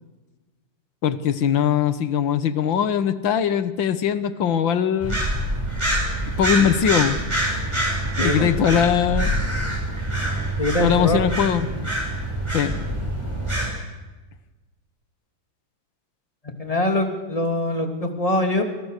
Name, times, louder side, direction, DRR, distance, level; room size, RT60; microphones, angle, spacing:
voice 1, 1.0-5.2 6.4-7.2 8.2-9.3 10.8-11.7 12.5-12.7, left 8 dB, 90° left, 12 dB, 2.1 m, -21 dB
sound 1, 5.0-13.7, right 1 dB, 15° right, 6.7 m, -25 dB
voice 2, 10.6-11.2 16.6-18.6, left 1 dB, 20° left, 4 dB, 3.0 m, -23 dB
29.0 x 27.5 x 6.7 m, 1.2 s
omnidirectional pair, 2.0 m